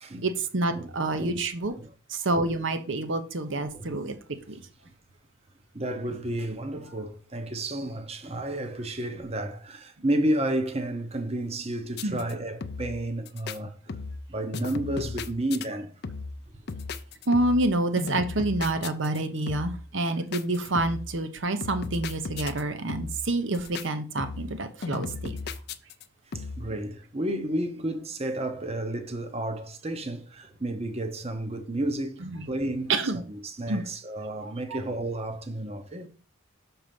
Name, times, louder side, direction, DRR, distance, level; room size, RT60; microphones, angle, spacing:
voice 1, 0.2-1.7 2.1-4.1 4.5-4.6 12.0-12.3 17.3-25.3 32.2-32.4 32.9-33.2 33.7-33.8 34.4-34.8, right 2 dB, 60° right, 0.9 m, -28 dB
voice 2, 3.6-3.9 5.7-14.0 14.3-15.9 26.3-32.9 33.3-36.1, right 1 dB, 30° right, 0.9 m, -31 dB
sound 1, 11.9-12.3 12.6-13.0 13.3-13.6 13.9-14.3 14.5-15.7 16.0-16.4 16.7-17.7 18.0-19.2 19.5-19.8 20.3-21.1 21.6-22.6 22.9-23.3 23.5-23.9 24.2-24.6 24.8-26.0 26.3-26.7, left 4 dB, 50° left, 0.5 m, -36 dB
6.6 x 4.5 x 5.2 m
head